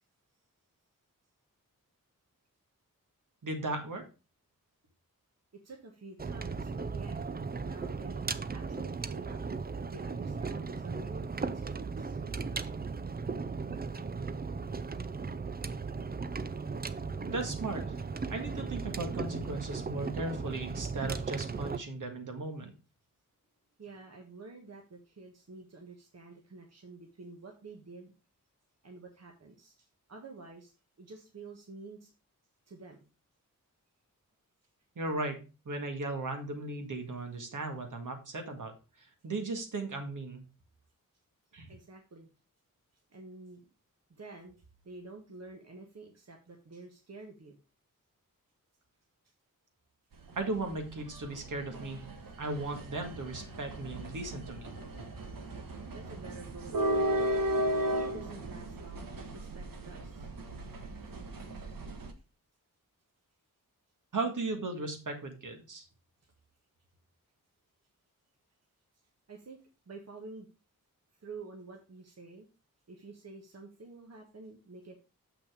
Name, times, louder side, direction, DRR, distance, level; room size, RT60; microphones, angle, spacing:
voice 1, 3.4-4.0 17.3-17.9 18.3-22.7 35.0-35.4 35.7-38.7 39.2-40.4 41.5-41.7 50.4-52.0 52.4-54.7 64.1-65.9, right 2 dB, 65° right, 4 dB, 2.0 m, -36 dB
voice 2, 5.6-7.2 7.6-8.3 8.5-9.4 9.9-12.2 23.8-28.1 28.8-32.1 32.7-33.1 41.7-42.3 43.1-43.7 44.1-47.6 55.9-57.3 57.8-60.3 66.2-66.3 69.3-70.5 71.2-72.5 72.9-75.0, right 3 dB, 50° right, 1 dB, 1.5 m, -49 dB
sound 1, 6.2-21.8, right 4 dB, 30° right, 0.5 m, -37 dB
sound 2, 50.1-62.1, right 1 dB, 80° right, 1.4 m, -36 dB
7.1 x 5.9 x 5.0 m, 0.31 s
wide cardioid pair, 125°, 33 cm